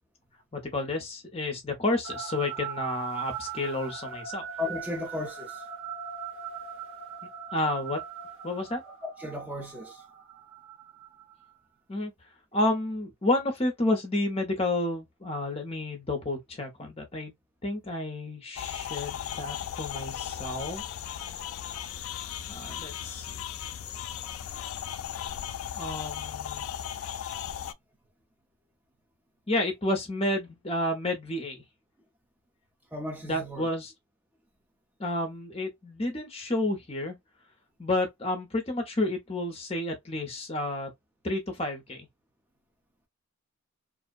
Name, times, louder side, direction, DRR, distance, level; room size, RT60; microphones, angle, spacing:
voice 1, 0.5-4.4 7.5-8.0 8.4-8.8 11.9-12.1 12.5-17.3 17.6-20.8 22.5-23.4 25.8-26.7 29.5-31.6 33.2-33.9 35.0-37.2 37.8-40.9 41.2-42.1, left 2 dB, 30° left, 0.7 m, -30 dB
sound 1, 2.0-11.5, right 7 dB, 80° right, 1.3 m, -40 dB
voice 2, 4.6-5.6 9.0-10.0 32.9-33.7, left 2 dB, 10° right, 0.6 m, -35 dB
sound 2, 18.6-27.7, left 9 dB, 85° left, 0.3 m, -36 dB
2.6 x 2.1 x 2.3 m
head